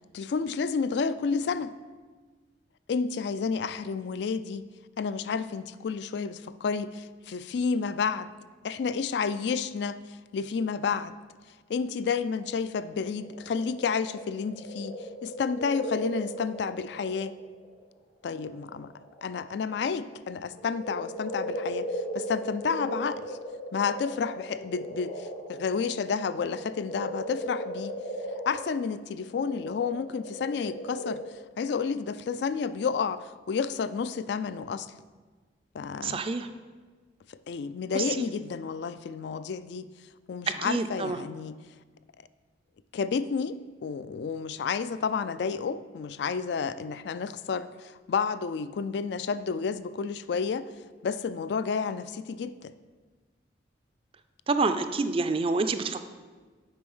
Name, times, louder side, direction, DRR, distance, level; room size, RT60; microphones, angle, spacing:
voice 1, 0.1-1.7 2.9-4.7 5.0-8.3 8.6-10.0 10.3-11.2 11.7-17.3 18.2-18.9 19.2-21.9 22.1-23.4 23.7-28.0 28.5-31.2 31.6-34.9 35.7-36.2 37.3-39.9 40.3-41.6 42.9-50.7 51.0-52.7, left 5 dB, 60° left, 14 dB, 0.3 m, -30 dB
sound 1, 12.9-17.8 18.3-20.0 20.4-31.1, equal, 75° left, 2.0 m, -37 dB
voice 2, 36.0-36.5 37.9-38.3 40.6-41.2 54.5-56.1, right 3 dB, 30° right, 9 dB, 0.4 m, -28 dB
7.8 x 5.1 x 5.5 m, 1.4 s
head